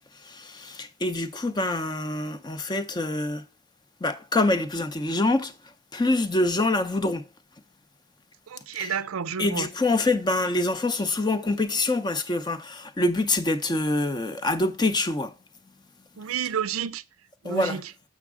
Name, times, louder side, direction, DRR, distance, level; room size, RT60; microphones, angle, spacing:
voice 1, 0.3-3.4 4.0-5.5 5.9-7.2 8.8-9.0 9.4-15.3 17.4-17.8, left 2 dB, 20° left, 0.5 m, -25 dB
voice 2, 8.7-9.7 16.2-17.0 17.4-17.8, right 7 dB, 85° right, 0.5 m, -30 dB
7.1 x 6.2 x 3.6 m
head